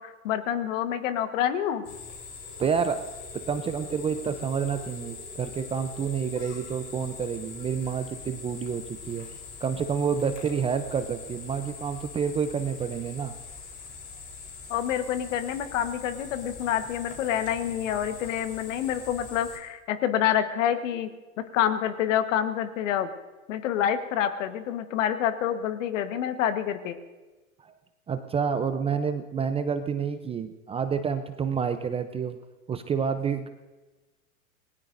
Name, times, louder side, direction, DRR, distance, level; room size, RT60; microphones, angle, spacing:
voice 1, 0.0-1.8 14.7-21.1 21.5-23.1 23.5-27.0, left 10 dB, 60° left, 9 dB, 1.4 m, -27 dB
sound 1, 1.8-19.6, left 5 dB, 35° left, 4.0 m, -43 dB
sound 2, 2.4-10.8, right 1 dB, 5° left, 4.6 m, -51 dB
voice 2, 2.6-3.0 3.5-9.3 9.6-13.3 27.6-27.7 28.1-32.4 32.7-33.5, right 6 dB, 15° right, 9 dB, 0.5 m, -29 dB
27.0 x 19.5 x 2.6 m, 1.2 s
hypercardioid pair, 115°, 42 cm